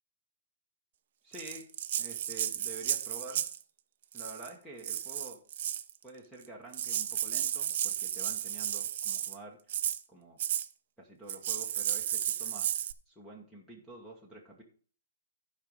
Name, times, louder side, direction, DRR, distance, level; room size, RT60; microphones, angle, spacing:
voice 1, 1.2-1.7 2.0-3.4 4.1-5.4 6.0-9.8 10.1-10.4 11.0-12.7 13.1-14.6, right 2 dB, 5° left, -1 dB, 1.2 m, -48 dB
Rattle (instrument), 1.3-3.6 4.1-4.5 4.8-5.9 6.4-6.5 6.7-9.4 9.7-10.0 10.4-10.7 11.3-12.9, right 11 dB, 45° right, 0.6 m, -33 dB
11.5 x 5.1 x 5.3 m, 0.42 s
hypercardioid pair, 165°, 0 cm